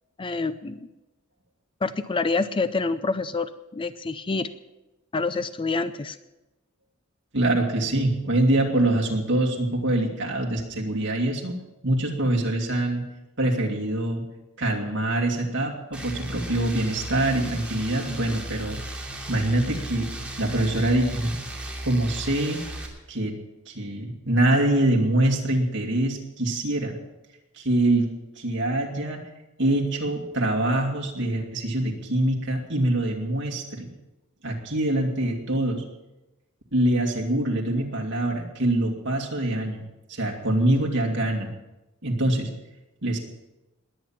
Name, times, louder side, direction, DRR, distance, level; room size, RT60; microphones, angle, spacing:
voice 1, 0.2-0.8 1.8-4.5 5.1-6.2, left 3 dB, 25° left, 12 dB, 0.5 m, -27 dB
voice 2, 7.3-13.0 13.4-14.2 14.6-18.8 19.3-20.1 20.4-21.4 21.8-22.6 23.1-23.4 23.7-26.9 27.5-28.1 28.4-29.3 29.6-33.9 34.4-35.8 36.7-39.8 40.1-41.5 42.0-42.5 43.0-43.2, right 1 dB, 55° right, 1 dB, 2.5 m, -24 dB
sound 1, 15.9-22.9, right 1 dB, 5° right, 2.7 m, -36 dB
20.5 x 8.8 x 5.9 m, 1.0 s
head